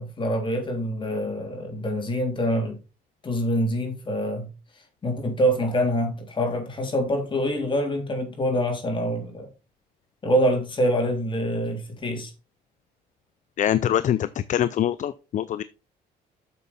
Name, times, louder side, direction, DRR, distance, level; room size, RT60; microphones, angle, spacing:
voice 1, 0.0-2.8 3.2-4.5 5.0-9.5 10.2-12.3, equal, 30° left, 3.5 m, -25 dB
voice 2, 13.6-15.6, left 11 dB, 45° left, 0.5 m, -24 dB
8.4 x 6.9 x 4.2 m
cardioid pair, 110°, 17 cm